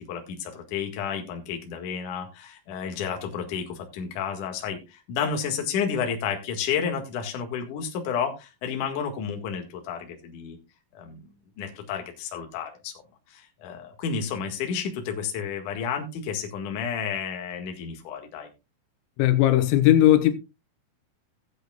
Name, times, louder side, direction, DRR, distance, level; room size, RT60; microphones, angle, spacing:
voice 1, 0.1-10.6 10.9-11.2 11.6-12.9 13.3-18.5, left 7 dB, 55° left, 2.4 m, -31 dB
voice 2, 19.2-20.4, left 13 dB, 90° left, 3.7 m, -18 dB
18.0 x 8.1 x 2.3 m
omnidirectional pair, 5.9 m